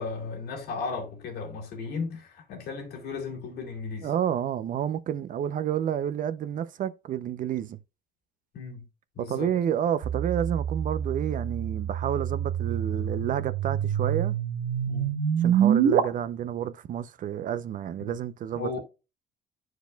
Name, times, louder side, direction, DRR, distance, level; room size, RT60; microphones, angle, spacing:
voice 1, 0.0-4.1 8.5-8.9 9.1-9.5 14.9-15.2 18.0-18.2 18.5-18.8, left 4 dB, 70° left, 2.3 m, -35 dB
voice 2, 4.0-7.8 9.2-14.3 15.4-18.8, right 9 dB, 50° right, 0.6 m, -30 dB
sound 1, 10.0-16.0, right 9 dB, 75° right, 1.0 m, -26 dB
10.0 x 4.7 x 2.3 m
cardioid pair, 110°, 17 cm